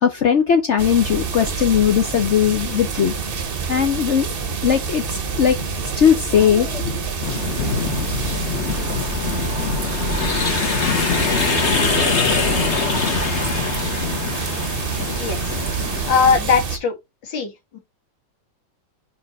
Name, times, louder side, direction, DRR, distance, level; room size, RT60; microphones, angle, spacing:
voice 1, 0.0-3.1 3.7-4.3 4.6-5.6 6.0-7.0, left 8 dB, 65° left, 0.7 m, -18 dB
sound 1, 0.8-16.8, right 5 dB, 40° right, 0.9 m, -27 dB
sound 2, 7.2-16.4, left 4 dB, 40° left, 1.5 m, -23 dB
voice 2, 15.2-15.5 16.1-16.9 17.2-17.8, left 5 dB, 90° left, 2.3 m, -20 dB
5.1 x 4.6 x 4.2 m
omnidirectional pair, 2.0 m